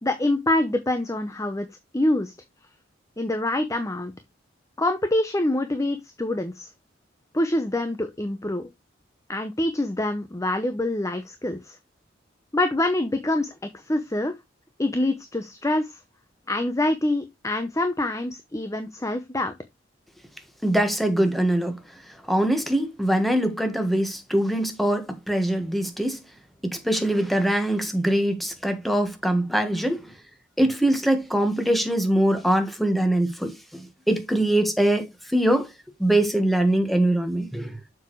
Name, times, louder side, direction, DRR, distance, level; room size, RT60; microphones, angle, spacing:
voice 1, 0.0-1.7 1.9-2.3 3.2-4.1 4.8-6.7 7.3-8.7 9.3-11.8 12.5-13.5 13.9-14.4 14.8-16.0 16.5-19.5, left 1 dB, 15° left, 0.8 m, -25 dB
voice 2, 20.6-21.8 22.3-26.2 26.6-30.0 30.6-35.0 35.3-35.7 36.0-37.7, right 1 dB, ahead, 1.5 m, -23 dB
7.1 x 6.2 x 3.2 m
head